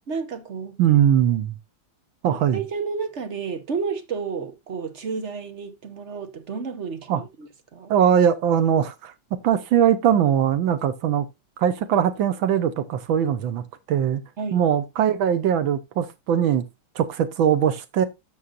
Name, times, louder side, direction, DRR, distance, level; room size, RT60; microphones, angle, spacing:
voice 1, 0.1-0.8 2.2-7.9 14.4-14.6, right 5 dB, 45° right, 1.1 m, -31 dB
voice 2, 0.8-1.5 2.2-2.6 7.1-7.2 7.9-9.1 9.4-11.3 11.6-14.2 14.5-16.6 16.9-18.0, right 9 dB, 90° right, 1.7 m, -21 dB
12.5 x 6.5 x 2.4 m
omnidirectional pair, 2.1 m